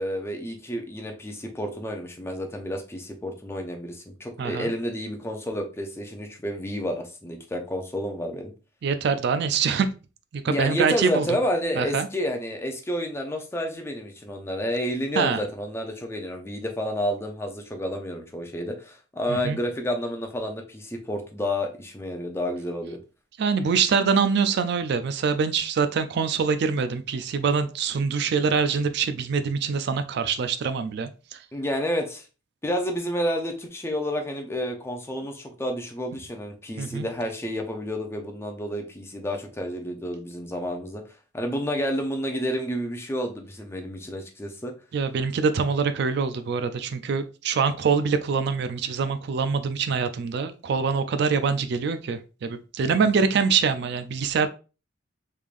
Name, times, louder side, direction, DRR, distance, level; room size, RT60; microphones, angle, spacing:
voice 1, 0.0-8.5 10.4-23.0 31.5-32.3 32.6-41.0 41.3-44.7, equal, 15° left, 0.5 m, -30 dB
voice 2, 4.4-4.7 8.8-9.9 10.3-11.3 11.8-12.1 15.2-15.4 19.3-19.6 23.4-31.4 36.8-37.1 44.9-54.5, right 5 dB, 60° right, 0.3 m, -24 dB
3.6 x 3.3 x 2.4 m
head